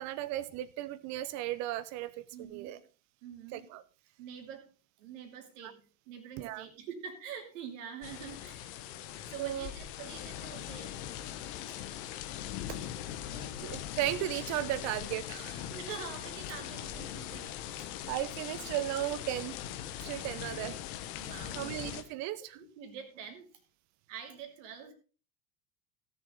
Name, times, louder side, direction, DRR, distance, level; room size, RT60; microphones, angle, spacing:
voice 1, 0.0-2.1 2.4-2.8 3.5-3.8 5.6-5.7 6.4-6.6 9.4-9.7 12.7-12.8 13.3-15.6 18.1-19.6 20.0-20.7 21.6-22.6, right 14 dB, 35° right, 17 dB, 0.9 m, -36 dB
voice 2, 2.3-2.8 3.2-3.7 4.2-4.7 5.0-9.0 9.3-11.0 11.7-11.8 15.7-17.9 20.3-20.5 21.2-21.7 22.5-23.6 24.1-24.9, right 7 dB, 55° right, 4 dB, 2.9 m, -46 dB
sound 1, 8.0-22.0, left 11 dB, 45° left, 1.4 m, -41 dB
16.5 x 7.1 x 3.9 m, 0.36 s
figure-of-eight pair, 90°, 46 cm